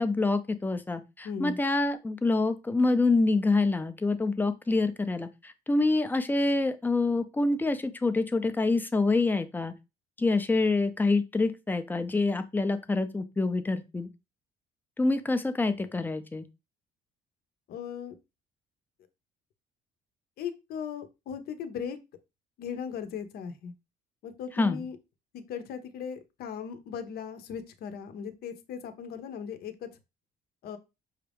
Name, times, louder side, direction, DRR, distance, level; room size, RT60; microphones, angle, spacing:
voice 1, 0.0-9.7 10.2-14.1 15.0-16.4 24.6-24.8, left 3 dB, 10° left, 10 dB, 0.5 m, -26 dB
voice 2, 1.2-1.6 17.7-18.1 20.4-22.0 22.6-23.7 24.2-25.0 25.3-29.9 30.6-30.8, left 7 dB, 65° left, 9 dB, 0.7 m, -38 dB
5.6 x 2.5 x 3.4 m, 0.25 s
cardioid pair, 110°, 17 cm